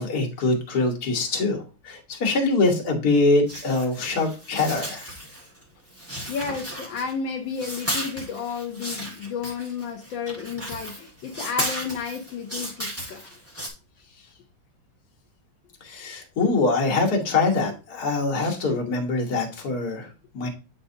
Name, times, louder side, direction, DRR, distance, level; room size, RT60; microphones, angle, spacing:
voice 1, 0.0-5.1 15.8-20.5, left 3 dB, 55° left, 2 dB, 1.7 m, -24 dB
sound 1, 3.5-5.6 5.9-7.3 7.5-13.7, equal, 10° right, 1.3 m, -34 dB
voice 2, 6.3-13.3 18.7-18.8 20.4-20.5, left 6 dB, 80° left, 2 dB, 1.5 m, -32 dB
8.2 x 4.4 x 2.7 m, 0.32 s
omnidirectional pair, 2.1 m